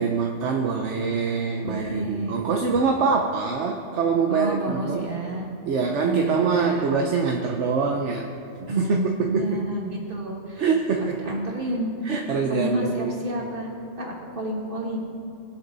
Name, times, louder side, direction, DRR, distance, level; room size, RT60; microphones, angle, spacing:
voice 1, 0.0-5.1 5.7-8.3 8.7-9.6 10.6-11.4 12.0-13.1, right 5 dB, 70° right, 2 dB, 1.2 m, -24 dB
voice 2, 1.6-2.4 4.3-5.5 6.0-6.9 8.6-10.6 11.0-11.9 12.5-13.7 14.0-15.0, right 1 dB, 45° right, -2 dB, 2.4 m, -29 dB
23.0 x 7.7 x 4.1 m, 2.9 s
omnidirectional pair, 1.3 m